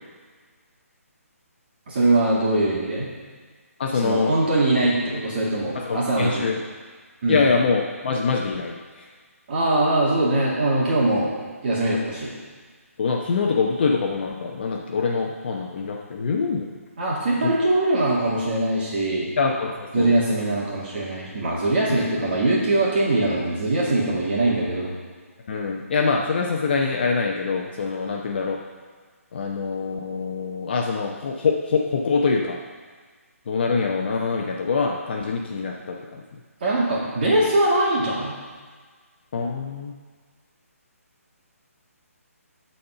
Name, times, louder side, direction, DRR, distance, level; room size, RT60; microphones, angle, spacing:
voice 1, 1.9-3.1 4.0-6.5 7.2-7.4 9.5-11.3 11.6-12.3 17.0-19.3 19.9-24.9 36.6-38.4, right 2 dB, 40° right, -6 dB, 2.2 m, -22 dB
voice 2, 3.8-4.3 5.7-6.6 7.3-9.0 13.0-16.7 17.4-17.6 19.4-20.1 21.9-22.0 25.5-28.6 29.3-32.6 33.5-36.2 39.3-40.0, left 4 dB, 40° left, 0 dB, 0.8 m, -24 dB
12.5 x 4.3 x 5.6 m, 1.5 s
hypercardioid pair, 165°, 8 cm